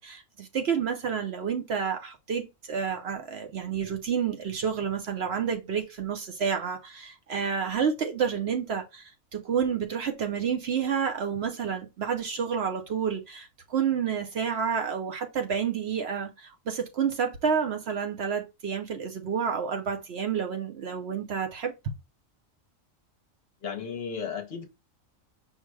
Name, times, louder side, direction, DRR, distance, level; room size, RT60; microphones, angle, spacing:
voice 1, 0.0-21.7, right 7 dB, 60° right, 0.8 m, -29 dB
voice 2, 23.6-24.7, left 6 dB, 55° left, 0.9 m, -34 dB
5.5 x 2.1 x 4.6 m
omnidirectional pair, 1.4 m